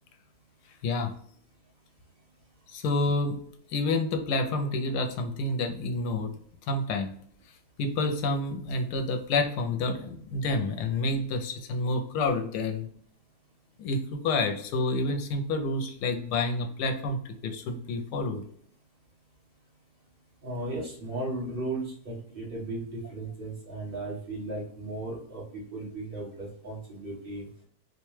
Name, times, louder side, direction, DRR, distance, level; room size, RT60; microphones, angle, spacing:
voice 1, 2.7-3.4 3.7-6.3 6.7-7.1 7.8-12.9 13.8-18.4, left 2 dB, 80° left, 5 dB, 1.2 m, -29 dB
voice 2, 20.4-27.5, right 2 dB, 35° right, -4 dB, 1.4 m, -36 dB
4.3 x 2.2 x 3.1 m, 0.62 s
omnidirectional pair, 1.8 m